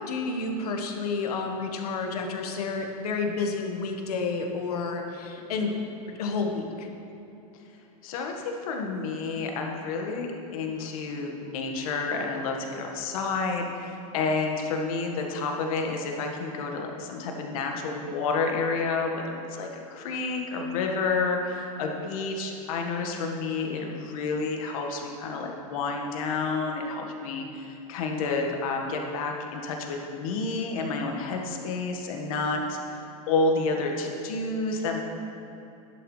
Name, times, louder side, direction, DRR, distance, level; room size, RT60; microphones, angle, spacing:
voice 1, 0.0-5.8 6.1-6.9, left 4 dB, 85° left, 3 dB, 1.4 m, -30 dB
voice 2, 8.0-10.3 10.5-33.0 33.3-35.0, left 3 dB, 65° left, 2 dB, 1.6 m, -30 dB
11.5 x 11.0 x 3.2 m, 2.9 s
supercardioid pair, 135°, 19 cm